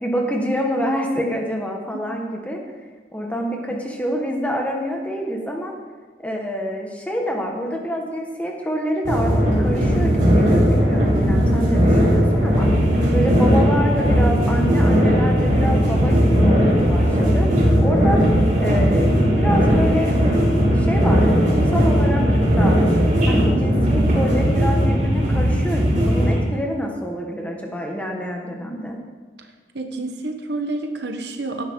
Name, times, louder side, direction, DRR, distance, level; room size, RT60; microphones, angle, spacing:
voice 1, 0.0-2.6 3.1-5.7 6.2-12.7 13.1-17.5 17.8-18.2 18.6-20.3 20.6-22.8 23.2-29.0, equal, 10° left, 0 dB, 1.6 m, -26 dB
sound 1, 9.0-26.4, equal, 45° right, 4.7 m, -17 dB
voice 2, 29.7-31.6, right 2 dB, 60° right, 5 dB, 1.2 m, -29 dB
17.0 x 11.0 x 3.9 m, 1.4 s
head